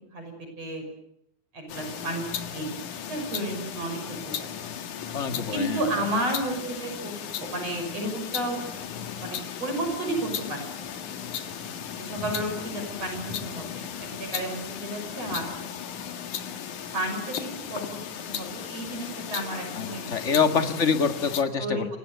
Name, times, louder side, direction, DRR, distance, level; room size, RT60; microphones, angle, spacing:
voice 1, 0.1-0.8 1.5-2.3 2.5-2.8 3.1-4.5 5.5-7.1 7.4-8.6 9.2-10.6 10.8-11.0 11.9-13.8 14.1-15.6 16.9-18.0 18.3-20.7 21.6-21.8, right 1 dB, 55° right, 4 dB, 7.1 m, -32 dB
sound 1, 1.7-21.4, left 8 dB, 85° left, 3.3 m, -36 dB
voice 2, 5.1-5.8 19.8-21.9, left 6 dB, 30° left, 8 dB, 1.8 m, -25 dB
29.5 x 24.0 x 8.1 m, 0.78 s
omnidirectional pair, 3.4 m